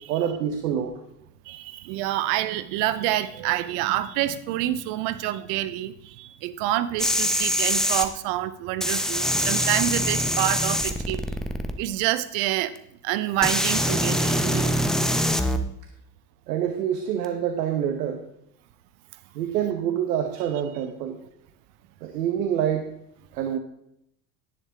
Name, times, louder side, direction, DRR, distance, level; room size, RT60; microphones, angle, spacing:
voice 1, 0.1-1.0 14.7-14.8 16.5-18.2 19.3-21.2 22.0-22.9 23.3-23.6, right 9 dB, 80° right, 6 dB, 1.1 m, -26 dB
voice 2, 1.5-11.2 11.8-12.7 13.0-14.7, right 14 dB, 65° right, 14 dB, 0.9 m, -27 dB
sound 1, 7.0-8.1 8.8-11.7 12.8-12.9 13.4-15.6 17.2-17.3, equal, ahead, 1.0 m, -24 dB
10.5 x 10.0 x 3.5 m, 0.76 s
hypercardioid pair, 75°, 46 cm